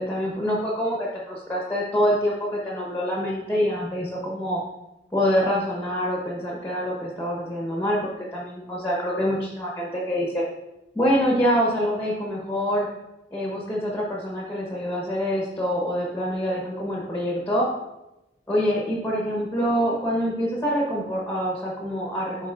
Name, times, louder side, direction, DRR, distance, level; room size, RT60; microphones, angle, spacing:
voice 1, 0.0-4.6 5.1-10.4 10.9-12.9 13.3-17.7 18.5-22.5, equal, 10° left, -3 dB, 0.9 m, -25 dB
11.5 x 4.1 x 2.5 m, 0.97 s
head